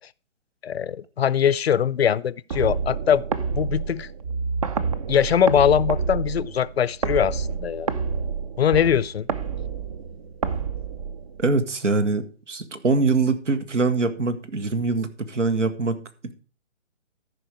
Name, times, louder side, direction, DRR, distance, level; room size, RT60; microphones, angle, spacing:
voice 1, 0.6-3.2 3.5-4.1 5.1-7.9 8.6-9.3, left 8 dB, 55° left, 0.5 m, -21 dB
sound 1, 2.5-11.6, right 5 dB, 30° right, 0.5 m, -28 dB
voice 2, 11.4-16.0, right 3 dB, 75° right, 1.6 m, -23 dB
14.0 x 5.3 x 4.7 m
figure-of-eight pair, 140°, 36 cm